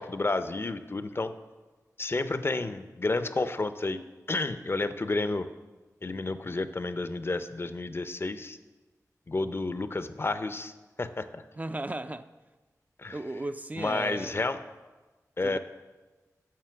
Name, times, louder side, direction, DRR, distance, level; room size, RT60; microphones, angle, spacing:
voice 1, 0.0-1.3 2.0-4.0 4.3-5.5 6.0-8.6 9.3-10.7 11.0-11.4 13.0-13.2 13.8-14.6 15.4-15.6, left 3 dB, 40° left, 11 dB, 0.5 m, -30 dB
voice 2, 11.6-12.3 13.1-14.4 15.4-15.6, right 2 dB, 25° right, 10 dB, 0.3 m, -35 dB
7.5 x 5.4 x 6.9 m, 1.2 s
wide cardioid pair, 70°, 6 cm